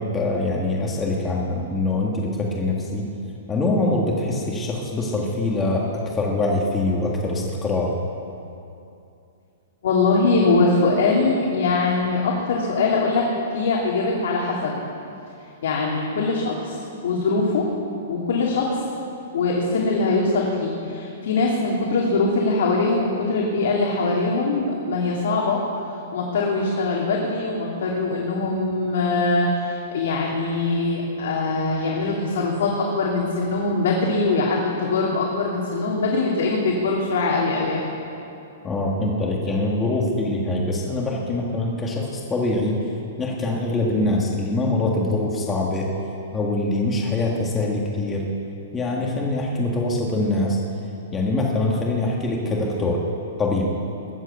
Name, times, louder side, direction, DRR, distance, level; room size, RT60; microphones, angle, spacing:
voice 1, 0.0-3.1 3.5-7.9 38.6-42.8 43.2-45.9 46.3-48.2 48.7-50.6 51.1-53.0 53.4-53.7, left 2 dB, 15° left, -2 dB, 1.7 m, -24 dB
voice 2, 9.8-14.8 15.6-17.7 18.1-18.8 19.3-25.6 26.1-37.8, left 3 dB, 65° left, -2 dB, 2.9 m, -22 dB
20.5 x 8.0 x 8.1 m, 2.6 s
hypercardioid pair, 165°, 0 cm